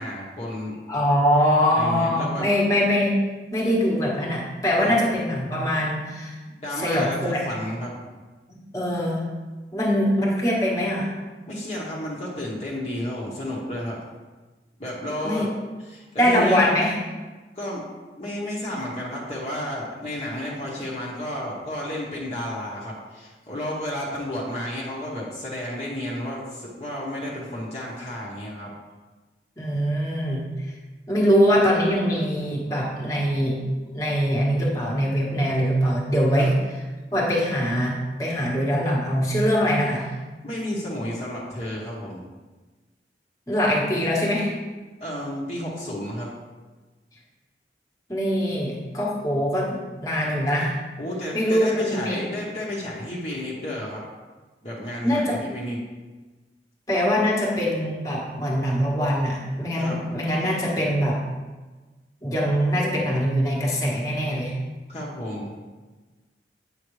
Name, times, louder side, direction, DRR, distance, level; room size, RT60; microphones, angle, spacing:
voice 1, 0.0-0.8 1.7-2.5 4.8-5.0 6.5-8.0 11.5-14.0 14.8-15.5 15.8-16.7 17.5-17.8 18.2-28.7 36.3-36.5 40.4-42.3 45.0-46.3 51.0-54.0 54.6-55.8 59.8-60.0 64.9-65.5, left 1 dB, 35° left, -5 dB, 1.1 m, -32 dB
voice 2, 0.9-3.2 3.5-6.4 6.7-7.6 8.5-9.3 9.7-11.1 15.2-15.5 16.2-17.0 29.6-30.4 31.1-33.6 33.9-36.5 37.1-40.1 43.5-44.6 48.1-50.8 51.3-52.2 55.0-55.4 56.9-61.2 62.2-64.6, equal, 20° left, -4 dB, 1.3 m, -23 dB
8.6 x 5.7 x 3.2 m, 1.3 s
head